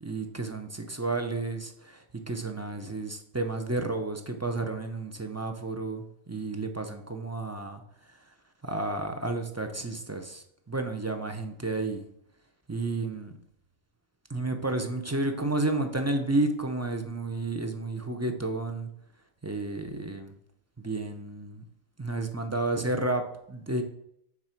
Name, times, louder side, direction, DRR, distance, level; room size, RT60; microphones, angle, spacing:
voice 1, 0.0-7.8 8.6-12.0 12.7-13.3 14.3-18.9 19.4-20.3 20.8-21.6 22.0-23.2 23.5-23.8, right 2 dB, 20° right, 5 dB, 0.4 m, -31 dB
6.0 x 4.7 x 4.4 m, 0.74 s
omnidirectional pair, 1.1 m